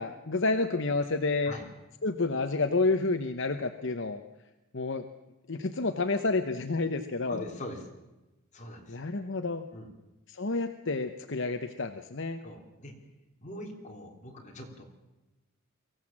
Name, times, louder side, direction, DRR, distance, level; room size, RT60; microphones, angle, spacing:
voice 1, 0.0-1.5 2.0-4.2 4.7-5.1 5.5-7.4 8.9-9.6 10.3-12.4, left 3 dB, 60° left, 8 dB, 0.9 m, -29 dB
voice 2, 7.3-7.9 8.5-9.1 9.7-9.9 12.4-12.9 13.4-14.8, left 1 dB, 35° left, 1 dB, 3.6 m, -42 dB
23.5 x 16.0 x 7.5 m, 1.0 s
head